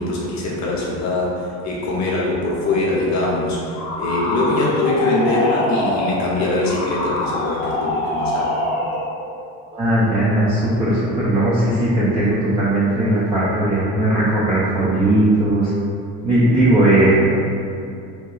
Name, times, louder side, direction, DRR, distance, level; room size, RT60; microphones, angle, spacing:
voice 1, 0.0-8.7, left 2 dB, 40° left, -5 dB, 0.8 m, -22 dB
sound 1, 3.7-9.1, left 1 dB, 65° left, 1.0 m, -24 dB
voice 2, 9.7-15.7 16.2-17.3, right 1 dB, 15° right, -9 dB, 0.3 m, -17 dB
2.9 x 2.2 x 2.3 m, 2.5 s
supercardioid pair, 90°, 42 cm